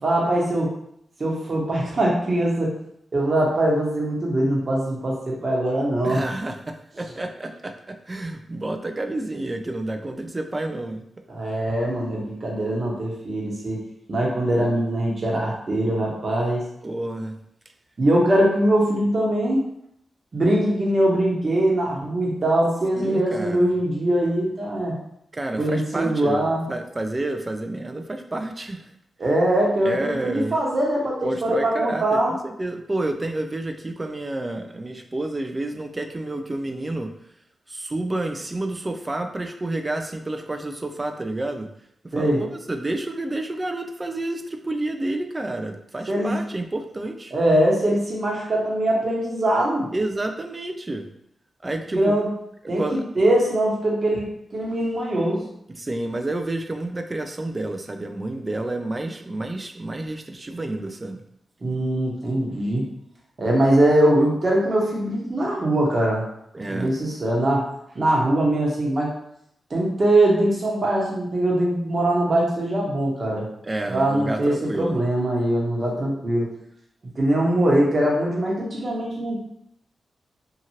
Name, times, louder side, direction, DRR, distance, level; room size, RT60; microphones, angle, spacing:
voice 1, 0.0-0.7 1.2-2.7 3.1-6.2 11.3-13.8 14.1-16.6 18.0-19.6 20.3-25.0 25.6-26.6 29.2-32.4 42.1-42.4 46.1-46.4 47.3-49.9 51.9-52.3 52.7-55.5 61.6-62.8 63.4-66.2 66.7-67.7 67.9-69.1 69.7-73.5 73.9-76.5 77.1-79.4, right 1 dB, 50° right, -3 dB, 1.1 m, -22 dB
voice 2, 6.0-11.1 16.8-17.4 22.9-23.7 25.3-28.9 29.8-30.6 31.2-37.1 37.7-41.7 42.1-47.3 49.9-51.1 51.6-52.1 52.8-53.0 55.7-61.2 66.5-66.9 73.6-75.0, right 2 dB, 30° right, 6 dB, 0.4 m, -29 dB
2.8 x 2.5 x 2.8 m, 0.74 s
supercardioid pair, 45°, 0 cm